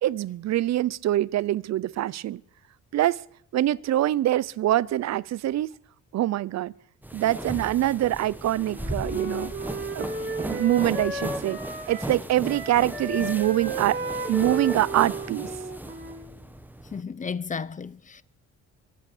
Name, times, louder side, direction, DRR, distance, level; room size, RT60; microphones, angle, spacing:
voice 1, 0.0-2.4 2.9-3.2 3.5-5.8 6.1-6.7 7.1-9.5 9.9-10.1 10.4-11.6 11.9-14.0 14.3-15.5, right 13 dB, 60° right, 0.6 m, -24 dB
sound 1, 7.0-17.0, right 1 dB, 5° right, 1.3 m, -37 dB
Wind instrument woodwind instrument, 8.5-12.2 12.4-16.4, right 2 dB, 35° right, 6.9 m, -34 dB
voice 2, 16.9-18.2, left 5 dB, 25° left, 0.7 m, -33 dB
24.0 x 8.4 x 6.7 m
cardioid pair, 90°, 30 cm